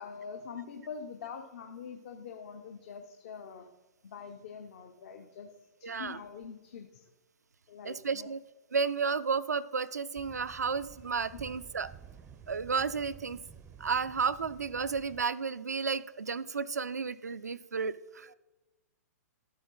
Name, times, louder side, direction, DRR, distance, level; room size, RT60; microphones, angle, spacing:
voice 1, 0.0-3.7 4.0-5.5 5.8-7.0 7.7-8.3 11.3-11.4, left 6 dB, 50° left, 4 dB, 0.9 m, -44 dB
voice 2, 5.8-6.2 7.8-8.4 8.7-11.9 12.5-13.4 13.8-18.3, right 5 dB, 75° right, 15 dB, 0.5 m, -32 dB
sound 1, 10.2-15.2, right 8 dB, 15° right, 0.6 m, -52 dB
12.5 x 8.0 x 3.9 m, 1.1 s
figure-of-eight pair, 115°, 9 cm